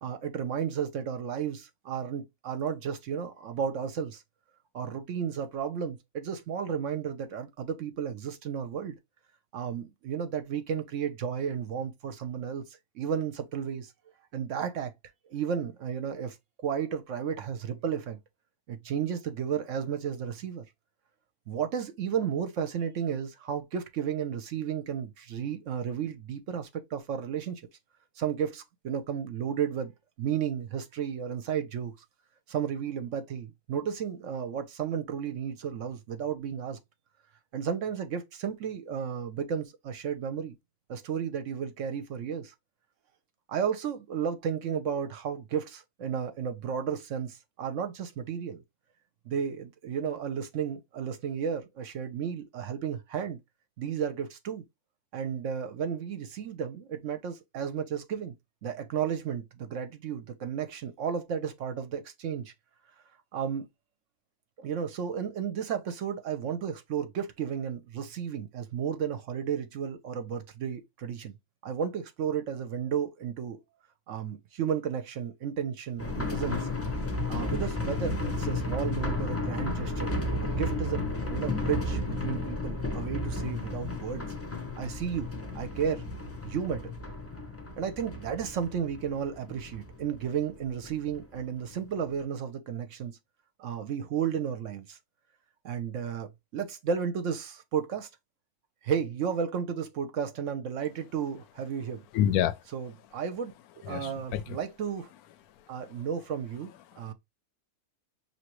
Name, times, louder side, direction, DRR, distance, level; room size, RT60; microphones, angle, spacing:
voice 1, 0.0-4.2 4.7-9.0 9.5-13.9 14.3-14.9 15.3-18.2 18.7-20.6 21.5-27.6 28.2-29.9 30.2-31.9 32.5-36.8 37.5-40.5 40.9-42.5 43.5-48.6 49.3-53.4 53.8-54.6 55.1-58.3 58.6-62.5 63.3-63.7 64.6-71.3 71.6-73.6 74.1-76.7 77.3-80.1 80.4-84.3 84.8-85.3 85.5-86.0 86.4-86.9 87.8-93.2 93.6-95.0 95.6-98.1 98.8-102.0 102.7-103.5 103.8-105.1 105.7-106.7 107.0-107.1, right 7 dB, 65° right, 0.9 m, -33 dB
sound 1, 76.0-91.5 91.7-91.8 92.2-92.3, left 2 dB, 15° left, 0.4 m, -33 dB
voice 2, 102.1-102.6 103.8-104.6 105.6-106.1 106.9-107.1, left 10 dB, 80° left, 1.0 m, -30 dB
5.7 x 2.9 x 2.9 m
omnidirectional pair, 1.6 m